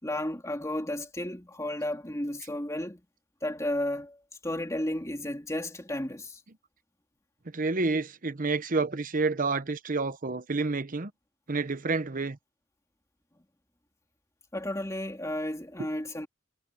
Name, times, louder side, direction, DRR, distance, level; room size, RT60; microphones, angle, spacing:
voice 1, 0.0-3.0 3.4-6.4 14.5-16.3, left 1 dB, 15° left, 3.1 m, -33 dB
voice 2, 7.5-11.1 11.5-12.4, right 3 dB, 40° right, 0.9 m, -29 dB
head